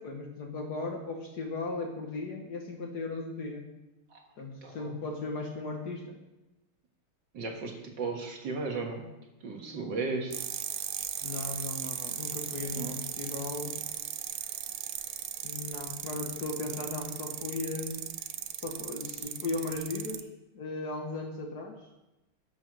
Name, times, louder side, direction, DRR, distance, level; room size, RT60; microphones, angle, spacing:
voice 1, 0.0-3.7 4.4-6.2 11.2-13.8 15.4-18.1 18.6-20.3 20.5-21.8, left 3 dB, 55° left, 3 dB, 1.6 m, -37 dB
voice 2, 4.6-5.0 7.3-9.0 9.4-10.3 12.7-13.0, right 4 dB, 55° right, 2 dB, 2.0 m, -35 dB
sound 1, 10.3-20.2, right 10 dB, 80° right, 0.8 m, -37 dB
12.0 x 6.1 x 6.4 m, 1.0 s
omnidirectional pair, 2.4 m